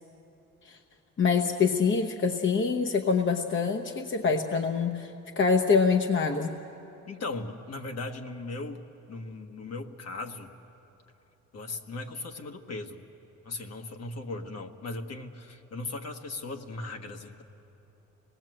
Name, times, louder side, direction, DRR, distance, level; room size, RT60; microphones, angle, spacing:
voice 1, 1.2-5.1 5.4-6.6, left 5 dB, 40° left, 4 dB, 1.0 m, -25 dB
voice 2, 7.1-10.5 11.5-13.1 13.4-17.4, left 2 dB, 55° left, 4 dB, 1.5 m, -38 dB
26.5 x 19.5 x 7.8 m, 2.9 s
cardioid pair, 90°, 30 cm